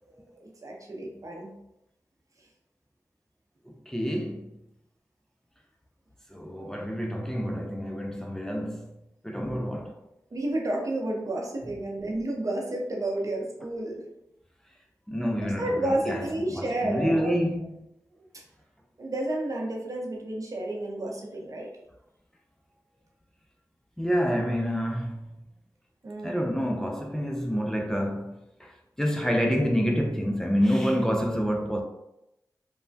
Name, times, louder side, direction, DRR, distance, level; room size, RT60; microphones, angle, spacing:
voice 1, 0.1-1.5 10.3-14.0 15.4-17.4 19.0-21.7 26.0-26.3, right 1 dB, 50° right, 0.7 m, -31 dB
voice 2, 3.9-4.5 6.3-8.8 9.2-9.9 15.1-15.7 16.1-16.2 16.5-17.7 24.0-25.2 26.2-28.3 28.6-28.7 29.0-31.8, equal, 5° left, 0.4 m, -27 dB
3.2 x 2.1 x 2.6 m
cardioid pair, 50°, 7 cm